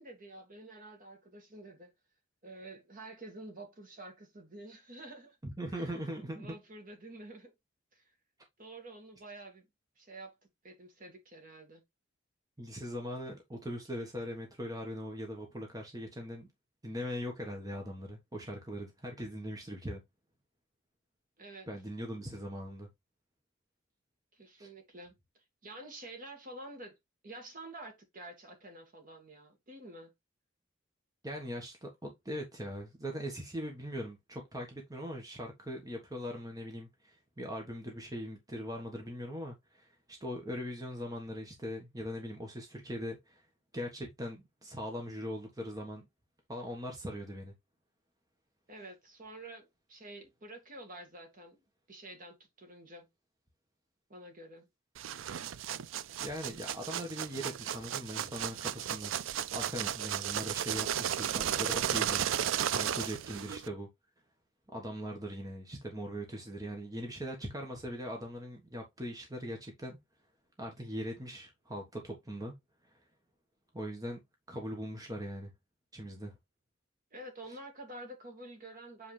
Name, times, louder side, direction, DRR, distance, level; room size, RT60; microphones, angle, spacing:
voice 1, 0.0-1.9 2.4-5.4 5.7-7.5 7.9-8.0 8.6-9.7 10.0-10.4 10.6-11.8 21.4-21.7 24.3-25.1 25.6-27.0 27.2-30.1 48.7-51.6 51.9-53.1 54.1-54.7 77.1-79.1, right 2 dB, 45° right, 2.0 m, -49 dB
voice 2, 5.4-6.5 12.6-16.5 16.8-20.0 21.7-22.9 24.6-24.7 31.2-43.4 43.7-46.1 46.5-47.5 56.2-63.9 64.7-70.0 70.6-72.5 72.8-73.1 73.7-74.2 74.5-75.5 75.9-76.4, equal, 20° right, 1.4 m, -40 dB
sound 1, 54.9-63.7, right 10 dB, 80° right, 0.4 m, -34 dB
7.7 x 4.2 x 3.3 m
head